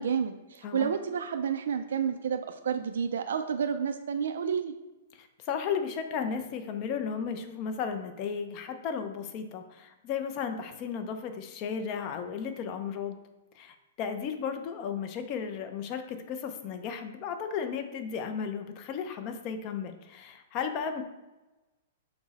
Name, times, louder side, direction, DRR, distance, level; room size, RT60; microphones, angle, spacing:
voice 1, 0.0-4.7, right 7 dB, 80° right, 7 dB, 0.3 m, -30 dB
voice 2, 5.1-13.2 13.5-21.0, left 6 dB, 35° left, 7 dB, 0.4 m, -34 dB
6.0 x 2.0 x 4.0 m, 1.1 s
hypercardioid pair, 155°, 0 cm